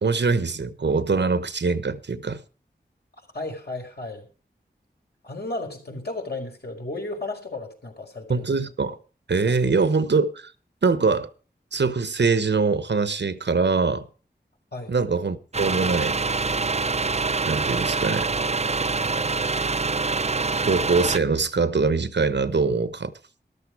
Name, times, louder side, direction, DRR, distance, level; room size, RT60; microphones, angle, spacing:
voice 1, 0.0-2.4 8.3-9.0 9.3-10.5 10.8-11.3 11.7-14.1 14.9-16.2 17.5-18.3 20.7-23.1, right 4 dB, 80° right, 1.1 m, -23 dB
voice 2, 3.3-4.3 5.2-8.5 9.5-9.6 14.7-14.9, left 2 dB, 65° left, 4.9 m, -34 dB
sound 1, 15.5-21.2, right 4 dB, 40° right, 0.6 m, -25 dB
13.5 x 12.5 x 4.7 m
wide cardioid pair, 55°, 18 cm